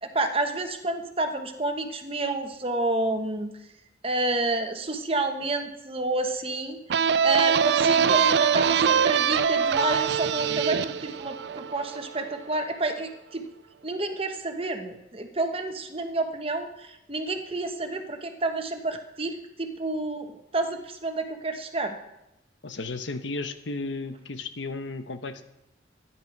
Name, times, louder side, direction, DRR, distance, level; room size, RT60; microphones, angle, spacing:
voice 1, 0.0-3.5 4.0-13.4 13.8-22.0, right 2 dB, 30° right, 6 dB, 1.2 m, -29 dB
sound 1, 6.9-12.3, right 7 dB, 60° right, 0.4 m, -23 dB
voice 2, 22.6-25.4, left 3 dB, 85° left, 9 dB, 1.1 m, -34 dB
12.5 x 10.5 x 6.0 m, 0.88 s
head